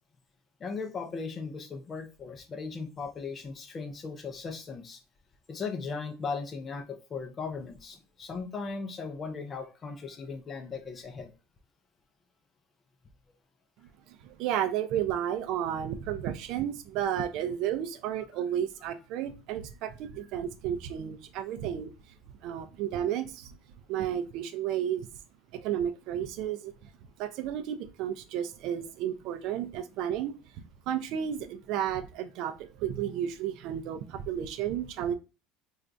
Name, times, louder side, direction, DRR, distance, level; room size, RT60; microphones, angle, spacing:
voice 1, 0.6-5.0 5.5-11.3, left 4 dB, 20° left, 7 dB, 0.5 m, -37 dB
voice 2, 13.8-21.9 22.4-23.6 23.9-25.1 25.5-26.9 27.2-30.3 30.9-35.1, right 10 dB, 55° right, 9 dB, 0.4 m, -32 dB
4.3 x 2.3 x 2.5 m, 0.30 s
cardioid pair, 165°, 0 cm